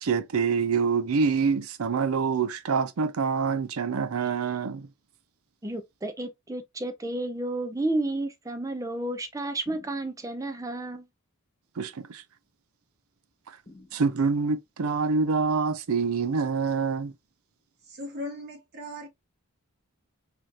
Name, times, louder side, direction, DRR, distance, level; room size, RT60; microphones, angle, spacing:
voice 1, 0.0-4.9 11.8-12.2 13.9-17.1, right 5 dB, 85° right, 0.5 m, -26 dB
voice 2, 5.6-11.0, right 2 dB, 15° right, 0.5 m, -31 dB
sound 1, 9.7-10.5 13.7-14.6, left 2 dB, 25° left, 1.3 m, -53 dB
voice 3, 17.8-19.1, left 1 dB, 50° right, 1.4 m, -38 dB
4.9 x 2.9 x 2.5 m
head